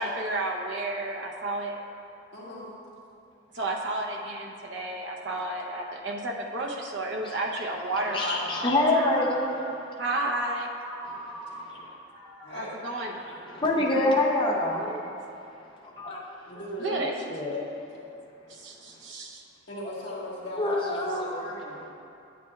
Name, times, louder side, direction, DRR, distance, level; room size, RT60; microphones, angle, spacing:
voice 1, 0.0-1.7 3.5-9.1 10.0-10.7 12.5-13.1 13.9-14.1 16.8-17.1 18.5-19.4, right 2 dB, 60° right, 0 dB, 0.8 m, -32 dB
voice 2, 2.3-2.8 9.6-9.7 12.4-12.8 16.5-17.1 19.7-21.8, equal, 60° left, -6 dB, 1.6 m, -38 dB
Ringtone, 7.9-10.0 10.8-14.2, equal, 10° right, 0.9 m, -43 dB
voice 3, 8.1-9.5 11.0-11.9 13.2-15.0 16.0-16.2 16.9-17.7 20.6-21.4, left 2 dB, 25° left, -4 dB, 0.6 m, -27 dB
9.2 x 8.5 x 2.4 m, 2.7 s
head